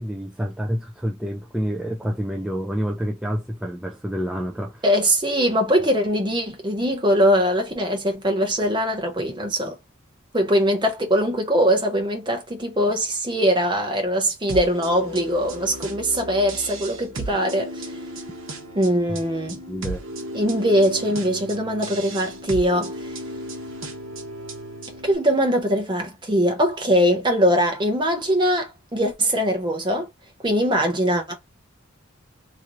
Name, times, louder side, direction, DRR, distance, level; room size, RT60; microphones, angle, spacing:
voice 1, 0.0-4.8 19.1-19.2 19.7-20.0, equal, 5° right, 0.3 m, -28 dB
voice 2, 4.8-9.8 10.3-17.9 18.7-19.6 20.3-23.2 25.0-30.1 30.4-31.3, equal, 20° right, 0.9 m, -21 dB
sound 1, 14.5-25.1, right 1 dB, 60° right, 1.1 m, -34 dB
3.3 x 3.0 x 2.5 m
head